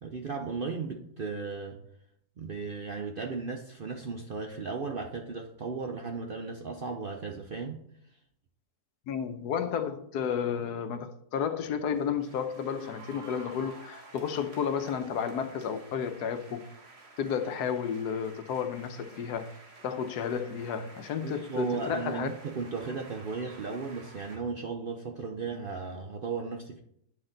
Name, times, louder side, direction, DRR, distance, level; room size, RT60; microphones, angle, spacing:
voice 1, 0.0-1.8 2.4-7.8 21.2-26.8, right 4 dB, 60° right, 0.5 m, -35 dB
voice 2, 9.1-16.6 17.2-19.5 19.8-22.3, left 7 dB, 80° left, 1.3 m, -32 dB
sound 1, 11.9-24.4, right 3 dB, 45° right, 1.5 m, -51 dB
9.5 x 6.1 x 3.9 m
omnidirectional pair, 1.7 m